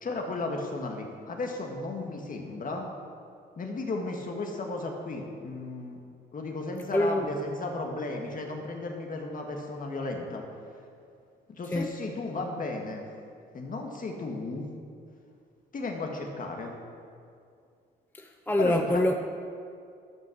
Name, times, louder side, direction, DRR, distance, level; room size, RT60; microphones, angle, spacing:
voice 1, 0.0-2.9 3.6-6.0 6.3-10.5 11.5-13.1 13.5-14.7 15.7-16.7 18.6-19.1, left 2 dB, 45° left, 2 dB, 1.8 m, -34 dB
voice 2, 6.9-7.3 11.7-12.0 18.1-19.1, left 1 dB, 10° left, 5 dB, 0.6 m, -26 dB
13.0 x 6.0 x 6.3 m, 2.3 s
cardioid pair, 90°, 20 cm